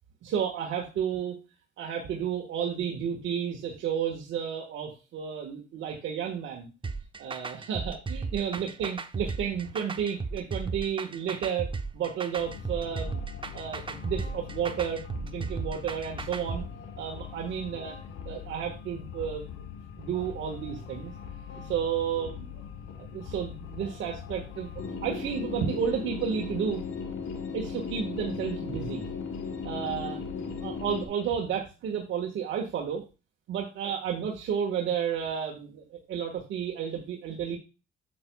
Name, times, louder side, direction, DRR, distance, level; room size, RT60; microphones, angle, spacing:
voice 1, 0.2-1.4 1.8-6.7 7.2-13.2 13.5-16.6 17.0-18.0 18.2-19.6 20.0-21.1 21.6-22.6 23.0-24.7 25.0-26.8 27.5-29.0 29.6-30.2 30.6-33.0 33.5-37.6, right 8 dB, 75° right, 0 dB, 1.5 m, -32 dB
sound 1, 6.8-16.6, right 4 dB, 25° right, 0.8 m, -35 dB
sound 2, 12.4-31.1, left 6 dB, 85° left, 1.6 m, -39 dB
8.7 x 7.7 x 2.3 m, 0.30 s
cardioid pair, 90°, 20 cm